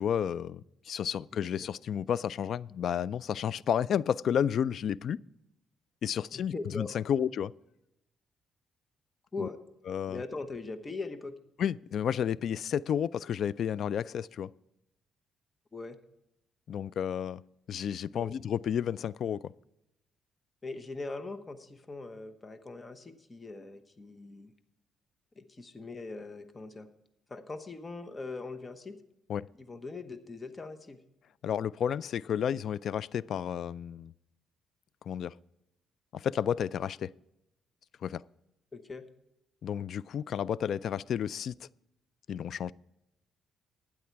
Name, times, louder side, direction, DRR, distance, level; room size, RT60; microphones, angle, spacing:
voice 1, 0.0-5.2 6.0-7.5 9.4-9.5 9.9-10.2 11.6-14.5 16.7-17.4 17.7-19.4 29.3-29.5 31.4-34.1 35.1-35.3 36.1-37.1 38.0-38.2 39.6-41.7 42.3-42.7, left 8 dB, 65° left, 0.3 m, -31 dB
voice 2, 6.3-7.0 9.3-9.6 10.1-11.3 15.7-16.0 18.1-18.3 20.6-24.5 25.4-26.9 27.3-29.0 29.6-31.0 38.7-39.1, left 3 dB, 25° left, 1.0 m, -41 dB
12.5 x 9.5 x 4.6 m
cardioid pair, 90°, 0 cm